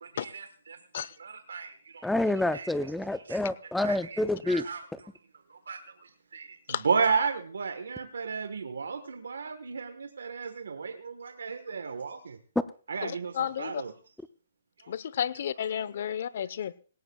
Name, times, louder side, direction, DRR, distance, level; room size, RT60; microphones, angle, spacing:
voice 1, 0.0-2.1 2.5-2.7 3.1-3.4 3.8-4.8 5.5-12.4 12.9-13.9 14.8-14.9 16.1-16.2, right 5 dB, 80° right, 8 dB, 1.2 m, -34 dB
voice 2, 2.0-4.7, left 1 dB, 5° left, 13 dB, 0.5 m, -28 dB
voice 3, 13.0-13.8 14.9-16.7, left 9 dB, 60° left, 18 dB, 0.8 m, -32 dB
18.0 x 18.0 x 2.3 m, 0.40 s
hypercardioid pair, 145°, 0 cm